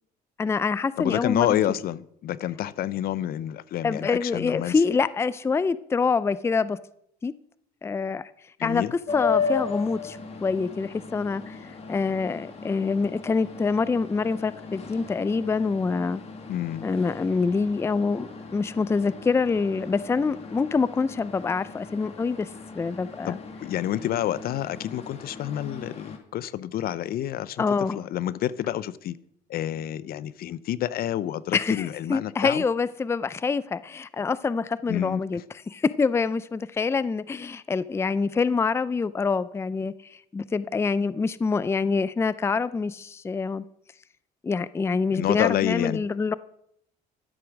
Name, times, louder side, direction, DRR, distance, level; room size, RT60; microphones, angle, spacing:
voice 1, 0.4-1.6 3.8-6.8 7.2-7.3 7.8-8.3 8.6-11.6 11.9-16.2 16.8-22.5 22.7-23.4 27.6-28.0 31.5-35.4 35.7-43.6 44.4-46.3, left 4 dB, 15° left, 0.4 m, -26 dB
voice 2, 1.0-4.7 8.6-8.9 16.5-16.9 23.2-27.6 28.0-29.2 29.5-32.6 34.9-35.4 45.1-46.1, left 12 dB, 65° left, 0.6 m, -28 dB
sound 1, 9.1-26.2, left 5 dB, 40° left, 2.1 m, -36 dB
12.5 x 7.8 x 6.2 m
cardioid pair, 110°, 17 cm